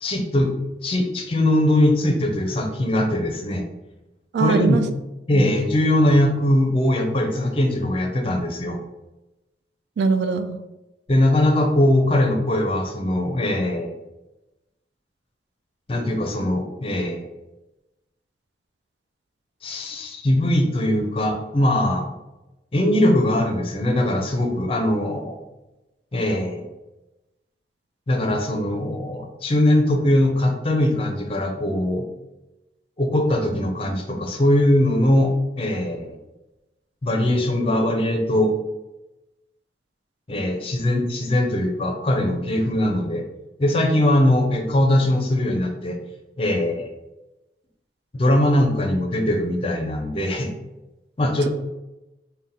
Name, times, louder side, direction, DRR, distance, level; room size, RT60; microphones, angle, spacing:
voice 1, 0.0-0.5 0.8-3.7 4.4-4.8 5.3-8.8 11.1-14.0 15.9-17.3 19.6-22.1 22.7-25.4 26.1-26.7 28.1-32.1 33.0-36.2 37.0-38.5 40.3-43.2 43.6-46.0 46.4-46.9 48.1-50.5 51.2-51.5, left 1 dB, 30° left, 3 dB, 0.5 m, -21 dB
voice 2, 4.3-4.8 5.3-5.5 10.0-10.6, right 4 dB, 70° right, 9 dB, 0.3 m, -21 dB
3.6 x 2.2 x 4.0 m, 1.0 s
head